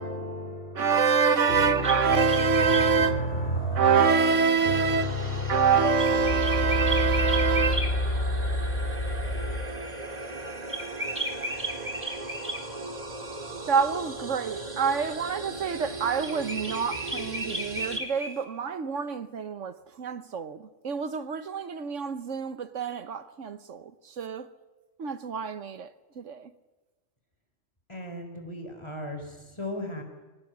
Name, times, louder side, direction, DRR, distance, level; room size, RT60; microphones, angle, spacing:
voice 1, 0.0-9.6, left 1 dB, 45° left, 4.6 m, -30 dB
voice 2, 0.7-5.2 5.5-8.1 13.7-24.5 25.0-25.9 26.2-26.5, right 6 dB, 75° right, 1.4 m, -26 dB
sound 1, 1.4-2.9 6.0-7.9 10.7-12.6 16.2-18.4, right 1 dB, 10° right, 3.0 m, -34 dB
sound 2, 4.0-18.0, right 2 dB, 30° right, 2.3 m, -38 dB
sound 3, 5.8-8.9, left 3 dB, 85° left, 2.0 m, -38 dB
voice 3, 27.9-30.0, left 1 dB, 20° left, 4.6 m, -37 dB
23.0 x 19.5 x 9.5 m
omnidirectional pair, 1.3 m